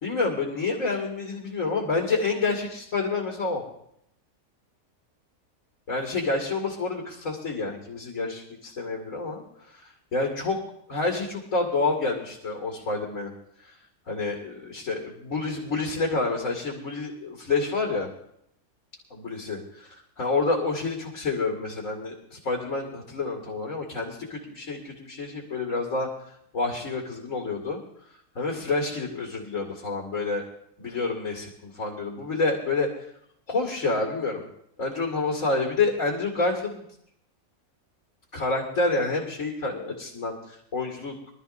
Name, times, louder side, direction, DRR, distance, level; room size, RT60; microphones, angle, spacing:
voice 1, 0.0-3.6 5.9-9.4 9.7-9.8 10.1-10.6 10.9-13.3 14.1-18.1 19.1-26.1 26.5-27.8 28.4-30.4 30.8-32.9 33.5-34.4 34.8-36.8 38.3-41.1, left 3 dB, 65° left, 0 dB, 2.6 m, -28 dB
24.0 x 13.0 x 2.7 m, 0.73 s
omnidirectional pair, 1.5 m